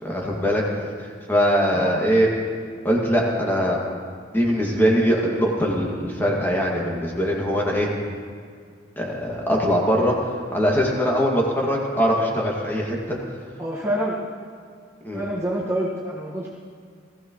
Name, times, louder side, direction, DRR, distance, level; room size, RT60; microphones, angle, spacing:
voice 1, 0.0-0.6 1.0-2.3 2.8-3.8 4.3-7.9 9.0-10.2 10.5-13.2 15.0-15.2, equal, 10° left, -3 dB, 2.2 m, -22 dB
voice 2, 13.6-14.2 15.1-16.5, right 1 dB, 15° right, -6 dB, 1.6 m, -27 dB
20.0 x 15.5 x 3.2 m, 2.1 s
head